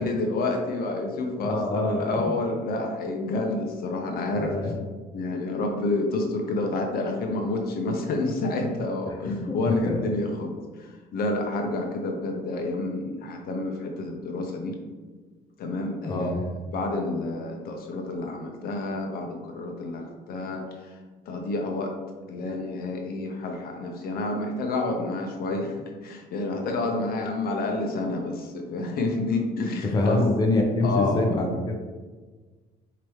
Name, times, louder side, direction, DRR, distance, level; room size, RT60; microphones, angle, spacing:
voice 1, 0.0-4.7 5.1-14.7 15.6-16.4 16.7-21.0 21.3-21.9 22.3-30.2 30.8-31.3, left 2 dB, 60° left, 2 dB, 0.7 m, -29 dB
voice 2, 1.4-2.3 4.4-4.7 9.3-10.0 16.0-16.4 29.8-31.8, left 2 dB, 25° left, 1 dB, 0.6 m, -25 dB
4.7 x 2.9 x 3.1 m, 1.3 s
cardioid pair, 110°, 17 cm